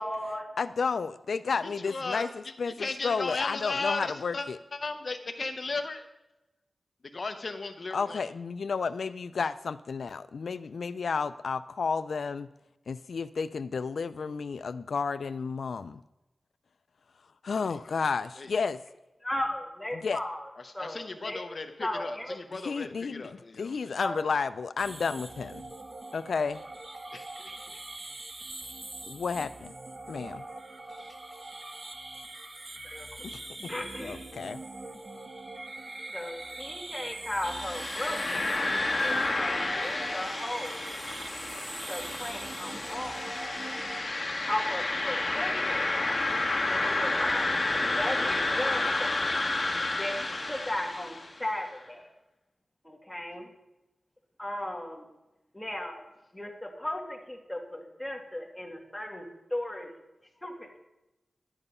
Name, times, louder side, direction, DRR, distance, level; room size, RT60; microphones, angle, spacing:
voice 1, 0.0-0.5 19.2-20.5 20.7-21.4 21.8-22.4 24.0-24.2 32.8-33.1 33.7-34.2 36.1-38.4 39.0-40.9 41.9-43.4 44.5-45.9 46.7-49.2 49.9-52.0 52.8-53.5 54.4-55.1 55.5-56.0 56.3-59.2 59.5-59.9 60.4-60.8, left 1 dB, 10° left, 1 dB, 2.1 m, -36 dB
voice 2, 0.6-4.6 7.9-12.5 12.9-16.0 17.4-18.8 19.9-20.2 22.6-25.6 26.1-26.6 29.1-29.7 30.1-30.4 33.2-33.7 34.0-34.6, left 5 dB, 85° left, 13 dB, 0.3 m, -32 dB
voice 3, 1.6-2.5 2.8-4.5 4.7-6.0 7.1-8.2 17.6-17.8 18.4-18.5 20.6-24.0 27.1-27.5, left 3 dB, 55° left, 7 dB, 0.7 m, -36 dB
sound 1, 24.8-44.0, right 2 dB, 35° right, 1.0 m, -42 dB
sound 2, 37.5-51.4, left 2 dB, 35° left, 1.6 m, -30 dB
12.0 x 8.9 x 5.4 m, 0.97 s
wide cardioid pair, 100°, 0 cm